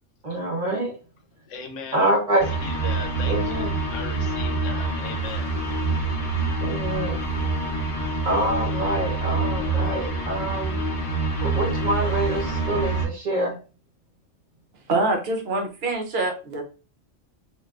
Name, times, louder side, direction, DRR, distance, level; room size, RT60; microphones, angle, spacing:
voice 1, 0.2-0.9 1.9-2.4 3.2-3.7 6.6-7.2 8.2-10.8 11.4-13.5, right 1 dB, 35° right, 0 dB, 1.0 m, -26 dB
voice 2, 1.5-2.2 2.6-5.5, left 5 dB, 80° left, 4 dB, 1.0 m, -38 dB
sound 1, 2.4-13.1, right 2 dB, 45° left, 1.0 m, -26 dB
voice 3, 14.9-16.6, right 2 dB, 60° right, 3 dB, 0.9 m, -25 dB
3.2 x 2.6 x 2.4 m, 0.34 s
omnidirectional pair, 1.3 m